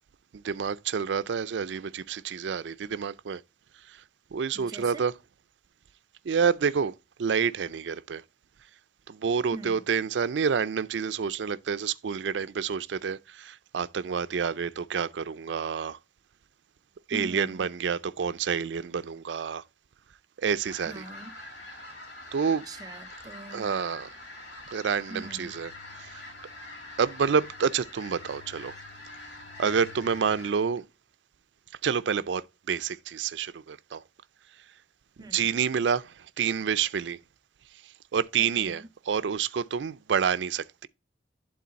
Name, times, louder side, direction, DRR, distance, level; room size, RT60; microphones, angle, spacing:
voice 1, 0.4-3.4 3.9-4.0 4.3-5.1 6.3-6.9 7.2-8.2 9.1-16.0 17.1-19.6 20.4-21.0 22.3-22.6 23.5-24.1 24.7-25.7 27.0-28.7 29.6-30.8 31.8-34.0 35.3-37.2 38.1-40.9, right 6 dB, 85° right, 0.4 m, -28 dB
voice 2, 4.5-5.1 9.5-9.8 17.1-17.7 20.9-21.3 22.6-23.8 25.1-25.5 35.2-35.5 38.4-38.9, right 2 dB, 20° right, 0.4 m, -43 dB
sound 1, 20.6-30.5, left 2 dB, 75° left, 2.7 m, -45 dB
sound 2, 25.2-30.4, left 8 dB, 45° left, 0.4 m, -55 dB
11.0 x 3.8 x 4.0 m
head